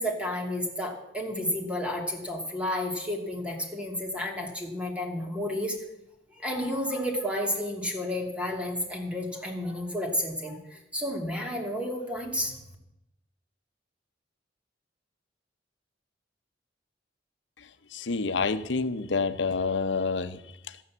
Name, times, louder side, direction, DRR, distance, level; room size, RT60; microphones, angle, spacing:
voice 1, 0.0-5.8 6.4-12.6, left 1 dB, 5° right, 1 dB, 2.6 m, -31 dB
voice 2, 17.6-20.8, left 4 dB, 85° left, 12 dB, 0.8 m, -29 dB
13.5 x 9.5 x 7.2 m, 0.86 s
head